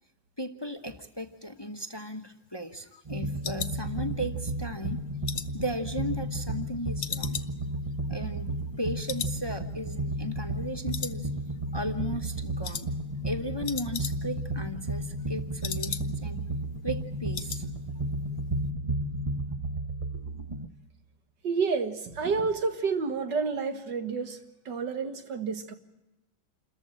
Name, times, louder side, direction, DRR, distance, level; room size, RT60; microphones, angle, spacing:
voice 1, 0.4-5.0 5.5-7.4 8.1-8.5 8.8-11.3 11.7-12.9 13.2-16.4 16.8-17.6, equal, 15° left, 7 dB, 1.0 m, -36 dB
sound 1, 1.7-4.5 4.9-6.6 7.0-8.8 9.1-9.4 9.7-9.8 10.2-10.7 10.9-11.7 12.0-12.3 12.6-12.9 13.2-13.3 13.5-14.5 14.8-16.4 16.7-16.8 17.1-17.7 18.0-18.2 18.5-18.6, left 8 dB, 55° left, 1.4 m, -39 dB
sound 2, 3.1-20.7, right 1 dB, 25° right, 0.9 m, -33 dB
voice 2, 21.4-24.4 24.7-25.7, right 5 dB, 70° right, 8 dB, 2.4 m, -29 dB
28.0 x 14.0 x 8.9 m, 0.98 s
omnidirectional pair, 1.9 m